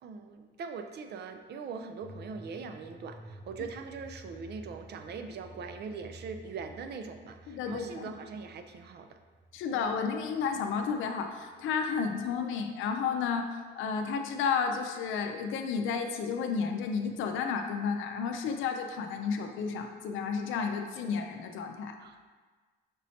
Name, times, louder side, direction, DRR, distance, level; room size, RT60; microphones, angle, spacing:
voice 1, 0.0-9.2 22.0-22.2, right 5 dB, 55° right, 7 dB, 0.4 m, -41 dB
sound 1, 2.0-11.9 12.2-12.3, right 1 dB, 10° right, 0.6 m, -52 dB
voice 2, 7.5-8.0 9.5-13.5 13.7-22.0, left 6 dB, 85° left, 5 dB, 0.5 m, -32 dB
5.1 x 3.1 x 2.8 m, 1.4 s
cardioid pair, 90°, 20 cm